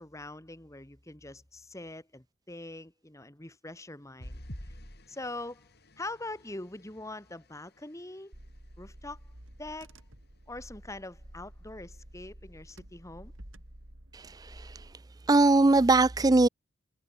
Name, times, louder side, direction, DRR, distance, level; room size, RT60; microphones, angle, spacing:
voice 1, 0.0-4.7 5.1-5.7 6.0-8.3 8.8-9.3 9.6-10.0 10.5-13.3, left 2 dB, 15° left, 1.6 m, -43 dB
sound 1, 4.2-8.9 9.5-9.7 10.1-10.2, equal, 55° left, 6.8 m, -49 dB
Car / Engine, 8.3-14.9, right 1 dB, 75° right, 4.6 m, -51 dB
voice 2, 14.1-14.9 15.3-16.5, right 2 dB, 20° right, 0.4 m, -22 dB
head